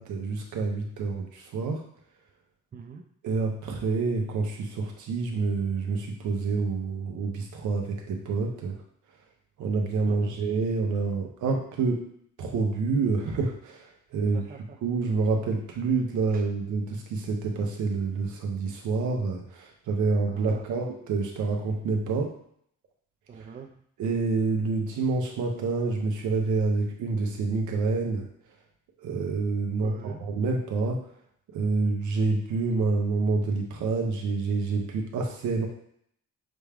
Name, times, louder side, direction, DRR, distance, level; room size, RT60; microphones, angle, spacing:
voice 1, 0.0-1.8 3.2-8.8 9.6-12.0 12.4-14.4 14.8-22.3 24.0-28.3 29.0-31.0 31.5-35.7, right 4 dB, 80° right, 1 dB, 0.9 m, -27 dB
voice 2, 2.7-3.0 10.1-10.4 14.3-14.8 16.3-16.5 20.3-20.7 23.3-23.8 29.8-30.2, right 6 dB, 30° right, 3 dB, 0.5 m, -44 dB
6.2 x 2.2 x 3.5 m, 0.68 s
cardioid pair, 90°, 30 cm